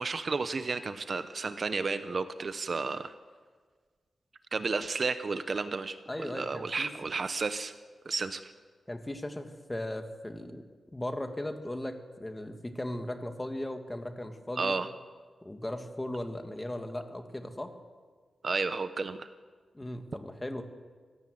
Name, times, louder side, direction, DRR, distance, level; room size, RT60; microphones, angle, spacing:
voice 1, 0.0-3.1 4.5-7.7 8.0-8.5 14.6-14.9 18.4-19.3, right 4 dB, 40° right, 11 dB, 0.9 m, -32 dB
voice 2, 6.1-6.9 8.9-10.6 10.9-14.8 15.4-17.7 19.7-20.6, left 1 dB, 15° left, 6 dB, 1.8 m, -37 dB
25.5 x 16.5 x 7.9 m, 1.5 s
wide cardioid pair, 150°, 0 cm